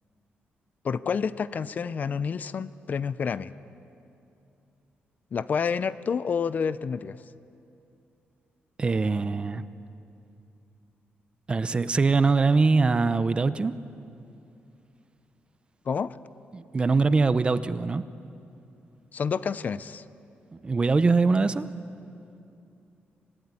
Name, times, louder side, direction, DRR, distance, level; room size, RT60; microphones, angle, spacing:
voice 1, 0.8-3.5 5.3-7.2 15.9-16.2 19.1-20.0, left 6 dB, 45° left, 16 dB, 0.6 m, -29 dB
voice 2, 8.8-9.7 11.5-13.8 16.5-18.1 20.5-21.7, right 4 dB, 25° right, 13 dB, 0.7 m, -23 dB
26.0 x 19.0 x 9.7 m, 2.7 s
wide cardioid pair, 140°, 4 cm